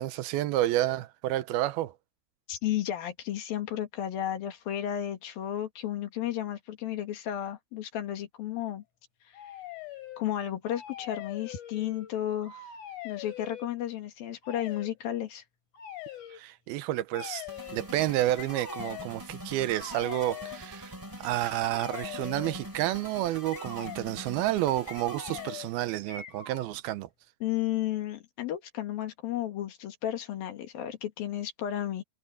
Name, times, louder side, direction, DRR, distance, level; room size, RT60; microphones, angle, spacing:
voice 1, 0.0-1.9 16.3-17.5 17.7-27.1, right 15 dB, 90° right, 2.7 m, -30 dB
voice 2, 2.5-8.8 9.3-9.4 10.2-12.6 13.0-15.4 27.4-32.0, left 11 dB, 70° left, 3.7 m, -33 dB
sound 1, 9.3-10.2 10.6-12.1 12.4-13.7 14.4-14.9 15.7-16.4 17.1-17.8 18.4-19.1 19.6-20.6 21.4-22.6 23.5-24.0 24.9-25.7 26.1-26.7, left 9 dB, 55° left, 4.8 m, -42 dB
sound 2, 17.5-25.8, equal, 5° right, 4.3 m, -44 dB
omnidirectional pair, 4.4 m